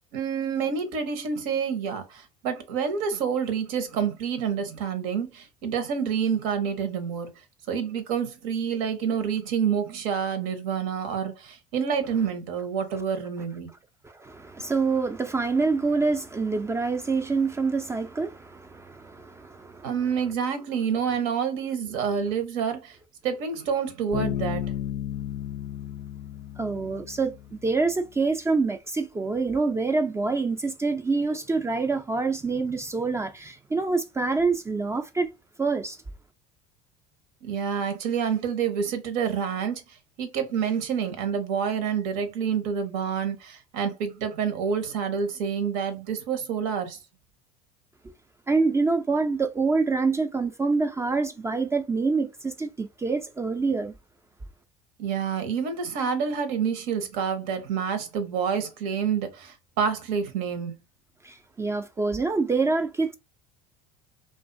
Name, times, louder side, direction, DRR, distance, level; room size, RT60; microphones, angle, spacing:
voice 1, 0.1-7.3 7.7-13.7 19.8-23.0 23.2-24.7 37.4-39.8 40.2-47.0 55.0-60.7, right 7 dB, 75° right, 0.8 m, -28 dB
voice 2, 14.0-19.9 26.6-35.3 35.6-36.0 48.5-53.9 61.2-63.1, right 4 dB, 15° right, 0.3 m, -26 dB
Bass guitar, 24.1-27.6, left 11 dB, 75° left, 0.4 m, -33 dB
2.4 x 2.3 x 2.5 m
supercardioid pair, 90°, 18 cm